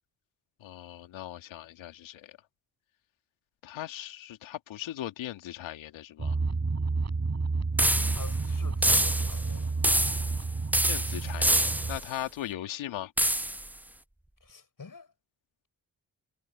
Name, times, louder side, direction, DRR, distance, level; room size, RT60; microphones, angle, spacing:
voice 1, 0.6-2.3 3.6-6.4 10.8-13.1, left 12 dB, 85° left, 2.5 m, -39 dB
sound 1, 6.2-12.0, right 3 dB, 35° right, 7.1 m, -30 dB
voice 2, 7.8-9.7 14.4-15.1, left 5 dB, 45° left, 8.0 m, -46 dB
sound 2, 7.8-8.4 8.8-9.5 9.8-10.4 10.7-12.1 13.2-13.7, right 1 dB, 5° right, 0.6 m, -26 dB
supercardioid pair, 45°, 45 cm